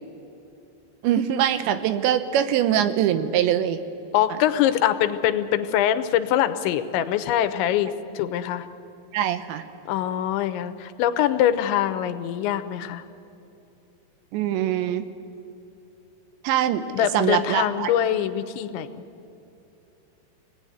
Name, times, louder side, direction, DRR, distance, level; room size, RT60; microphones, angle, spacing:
voice 1, 1.0-3.8 9.1-9.7 14.3-15.1 16.4-17.9, right 10 dB, 85° right, 11 dB, 3.2 m, -23 dB
voice 2, 4.1-8.7 9.9-13.0 16.9-19.1, left 11 dB, 90° left, 10 dB, 3.1 m, -23 dB
25.5 x 18.5 x 9.7 m, 2.8 s
omnidirectional pair, 5.2 m